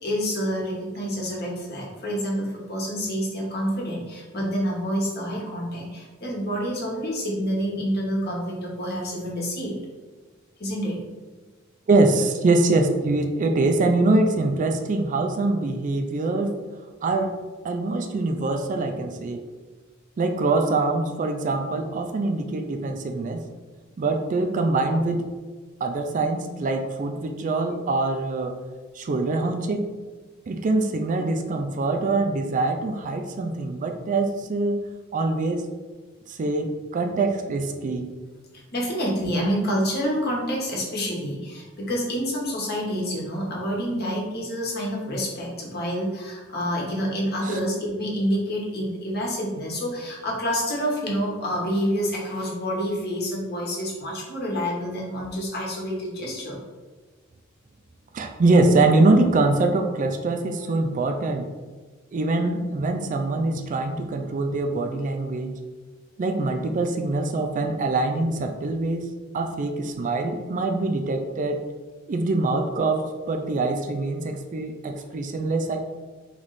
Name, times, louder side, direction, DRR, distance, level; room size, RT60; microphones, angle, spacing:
voice 1, 0.0-9.7 10.6-11.0 38.7-56.6, equal, 55° left, -3 dB, 1.1 m, -28 dB
voice 2, 11.9-16.6 17.0-17.4 17.6-19.4 20.2-23.4 24.0-25.2 25.8-28.6 28.9-29.9 30.5-35.7 36.3-38.1 47.4-47.6 58.1-61.5 62.1-65.6 66.2-69.1 69.3-71.6 72.1-75.8, right 2 dB, 40° right, 4 dB, 0.3 m, -24 dB
3.1 x 3.1 x 3.9 m, 1.3 s
head